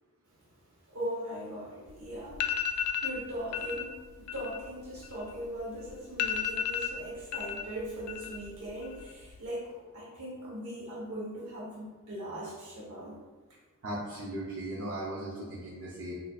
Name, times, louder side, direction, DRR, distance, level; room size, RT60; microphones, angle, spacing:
voice 1, 0.9-13.2, equal, 80° right, -5 dB, 1.4 m, -40 dB
sound 1, 1.9-2.0 2.3-3.2 3.5-3.8 4.2-5.6 5.9-6.0 6.2-7.6 7.9-8.5 8.8-9.4, left 8 dB, 85° left, 0.3 m, -33 dB
voice 2, 13.8-16.2, right 1 dB, 60° right, -6 dB, 0.6 m, -37 dB
2.7 x 2.5 x 4.0 m, 1.4 s
head